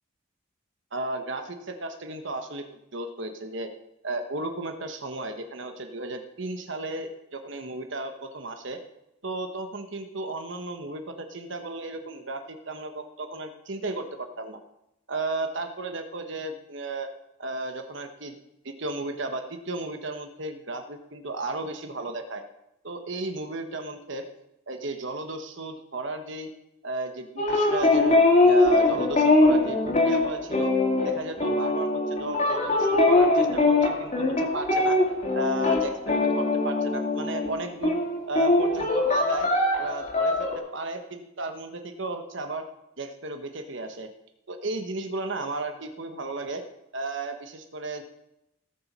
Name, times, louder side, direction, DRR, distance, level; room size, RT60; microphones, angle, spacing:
voice 1, 0.9-2.6 2.9-3.7 4.0-8.8 9.2-14.6 15.1-17.1 17.4-18.3 18.6-22.4 22.8-24.3 24.7-26.5 26.8-30.7 31.0-35.0 35.3-38.0 38.3-39.5 39.8-42.6 43.0-44.1 44.5-46.6 46.9-48.0, right 2 dB, 60° right, 6 dB, 1.1 m, -34 dB
sound 1, 27.4-37.6 37.8-40.6, left 2 dB, 35° left, 2.3 m, -22 dB
17.5 x 7.3 x 5.4 m, 0.84 s
head